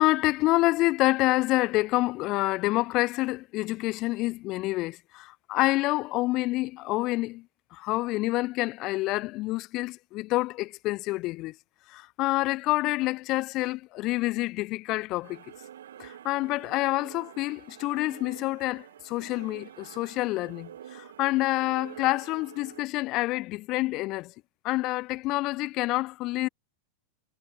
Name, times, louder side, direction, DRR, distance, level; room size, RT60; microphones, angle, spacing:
voice 1, 0.0-7.5 7.7-11.6 11.9-15.4 16.0-24.3 24.6-26.5, left 19 dB, 40° left, 0.8 m, -27 dB
sound 1, 15.2-22.8, right 10 dB, 60° right, 3.3 m, -47 dB
figure-of-eight pair, 90°, 0 cm